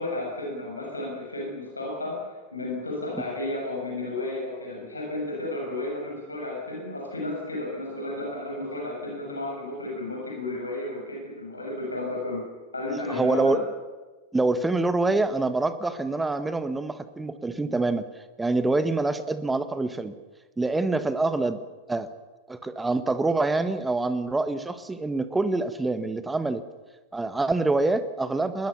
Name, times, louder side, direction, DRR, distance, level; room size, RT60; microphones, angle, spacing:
voice 1, 0.0-2.2 2.5-12.4 12.7-13.6, left 2 dB, 80° left, -2 dB, 7.3 m, -32 dB
voice 2, 12.9-13.6 14.3-18.0 18.4-20.1 20.6-21.6 21.9-22.1 22.5-26.6 27.1-28.7, right 2 dB, 10° right, 12 dB, 1.3 m, -26 dB
21.5 x 20.5 x 7.2 m, 1.2 s
figure-of-eight pair, 90°, 0 cm